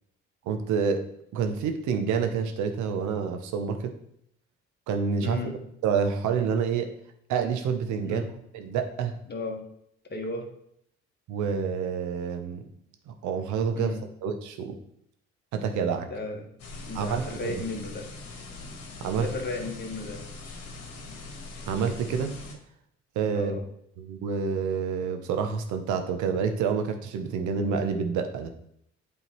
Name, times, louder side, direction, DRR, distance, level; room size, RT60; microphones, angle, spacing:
voice 1, 0.5-1.0 1.3-3.9 4.9-5.4 5.8-6.9 7.3-8.2 8.5-9.2 11.3-12.6 13.1-14.8 15.5-16.1 16.9-17.6 19.0-19.3 21.7-22.4 23.2-23.6 24.0-28.5, right 6 dB, 80° right, 6 dB, 1.0 m, -28 dB
voice 2, 5.2-5.6 8.0-8.3 9.3-9.6 10.1-10.5 13.8-14.1 16.0-16.5 16.9-18.1 19.2-20.3 23.3-23.6, left 2 dB, 35° left, 2 dB, 1.6 m, -35 dB
sound 1, 16.6-22.5, left 3 dB, 60° left, 1.6 m, -42 dB
8.4 x 3.8 x 4.5 m, 0.71 s
supercardioid pair, 70°, 29 cm